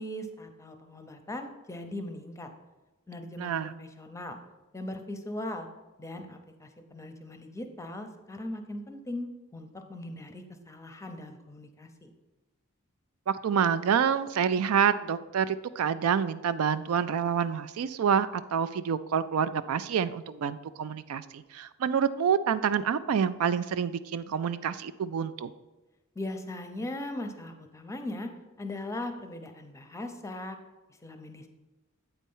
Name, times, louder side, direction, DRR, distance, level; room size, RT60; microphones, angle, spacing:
voice 1, 0.0-2.5 3.1-4.4 4.7-5.7 6.0-12.1 26.1-28.3 28.6-30.6 31.0-31.5, left 1 dB, 15° left, 6 dB, 0.6 m, -39 dB
voice 2, 3.4-3.7 13.3-25.5, right 7 dB, 85° right, 14 dB, 0.4 m, -27 dB
8.1 x 4.3 x 5.4 m, 1.1 s
head